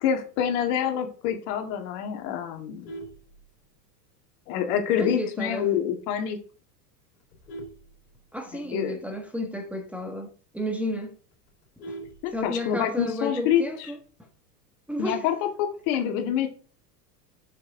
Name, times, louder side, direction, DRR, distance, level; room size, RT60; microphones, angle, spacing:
voice 1, 0.0-2.9 4.5-6.4 8.5-9.0 12.2-13.9 15.0-16.5, left 9 dB, 55° left, 2.0 m, -27 dB
Vehicle horn car horn honking, 2.6-4.0 4.5-4.8 5.1-5.2 5.6-5.7 6.0-6.3 6.9-8.7 9.1-9.2 9.5-9.6 10.0-10.1 10.4-10.5 10.8-12.8 14.0-14.5, right 2 dB, 75° left, 3.1 m, -43 dB
voice 2, 5.0-5.7 8.3-11.1 11.9-12.0 12.3-14.0 14.9-15.3, left 1 dB, 5° right, 1.3 m, -32 dB
6.4 x 6.4 x 3.7 m
hypercardioid pair, 95°, 48 cm